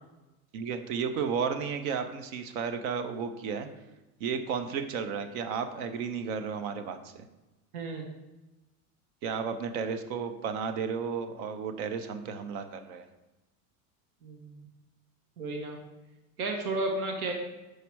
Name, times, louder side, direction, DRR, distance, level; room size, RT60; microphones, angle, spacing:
voice 1, 0.5-3.7 4.2-7.3 9.2-13.1, right 6 dB, 70° right, 8 dB, 0.9 m, -33 dB
voice 2, 14.2-14.5 15.4-15.8 16.4-17.3, right 2 dB, 85° right, 2 dB, 1.3 m, -32 dB
6.4 x 4.9 x 4.6 m, 1.1 s
supercardioid pair, 100°, 44 cm